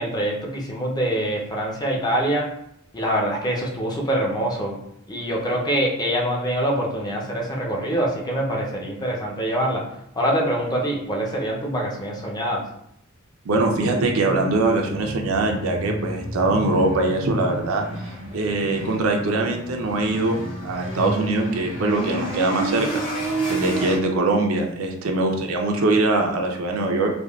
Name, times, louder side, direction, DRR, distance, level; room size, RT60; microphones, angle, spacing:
voice 1, 0.0-2.5 2.9-4.8 5.1-9.8 10.1-12.7, right 1 dB, 20° left, -2 dB, 0.5 m, -24 dB
sound 1, 13.5-24.0, right 1 dB, 60° left, 1.1 m, -30 dB
voice 2, 13.5-17.8 18.3-23.0 23.5-27.1, right 2 dB, 75° right, 3 dB, 0.5 m, -22 dB
3.4 x 2.2 x 2.3 m, 0.73 s
head